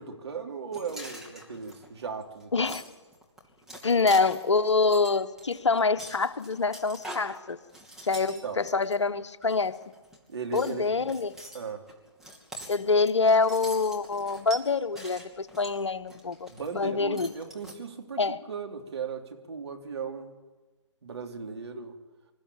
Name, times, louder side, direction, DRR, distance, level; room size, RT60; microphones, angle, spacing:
voice 1, 0.0-2.7 8.4-8.6 10.3-11.1 11.5-11.9 16.5-20.3 21.0-21.9, right 5 dB, 60° right, 3 dB, 3.4 m, -37 dB
sound 1, 0.7-9.0 9.4-10.2 10.5-16.8 17.1-17.7, right 1 dB, 5° right, 2.7 m, -44 dB
voice 2, 2.5-2.8 3.8-7.6 8.0-9.8 10.5-11.3 12.7-16.5 16.7-17.3 18.2-18.4, left 4 dB, 70° left, 12 dB, 1.1 m, -25 dB
26.5 x 14.5 x 8.8 m, 1.3 s
figure-of-eight pair, 135°, 15 cm